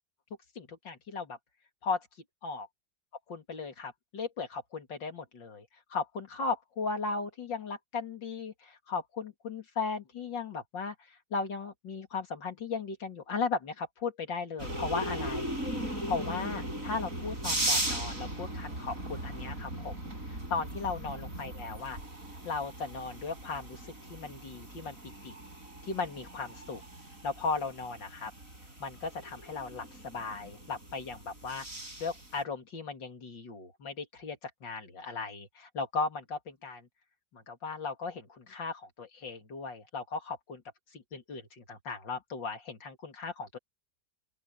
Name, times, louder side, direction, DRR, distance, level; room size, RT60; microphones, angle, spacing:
voice 1, 0.6-1.4 1.8-2.1 2.4-2.7 3.3-15.5 15.9-22.0 22.4-25.3 25.8-26.8 27.2-28.3 28.8-31.7 32.0-36.9 37.3-40.6 40.9-43.6, left 4 dB, 70° left, 3.1 m, -37 dB
sound 1, 14.6-32.4, right 1 dB, 45° right, 8.3 m, -38 dB
open air
omnidirectional pair, 2.0 m